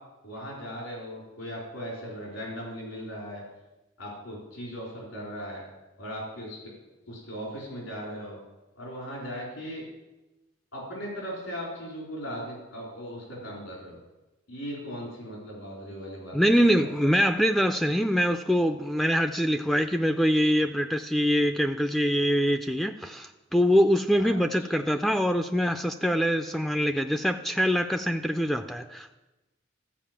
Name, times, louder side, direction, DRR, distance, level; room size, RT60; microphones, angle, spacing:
voice 1, 0.2-3.4 4.0-5.6 6.0-6.7 7.1-8.4 8.8-9.8 10.7-14.0 14.5-16.9 24.2-24.7, equal, 80° left, -4 dB, 4.1 m, -38 dB
voice 2, 16.3-29.2, equal, ahead, 6 dB, 0.3 m, -24 dB
13.5 x 5.1 x 7.4 m, 1.0 s
head